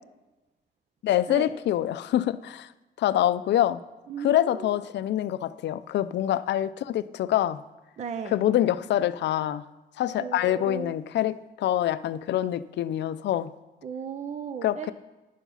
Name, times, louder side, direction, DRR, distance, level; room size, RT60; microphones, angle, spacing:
voice 1, 1.0-2.7 3.0-3.8 4.2-7.6 8.3-9.6 10.0-13.5 14.6-14.9, left 12 dB, 70° left, 14 dB, 0.4 m, -25 dB
voice 2, 4.1-4.8 8.0-8.4 10.2-10.9 13.8-14.9, right 7 dB, 40° right, 10 dB, 0.5 m, -36 dB
10.0 x 7.1 x 5.6 m, 1.1 s
cardioid pair, 145°, 19 cm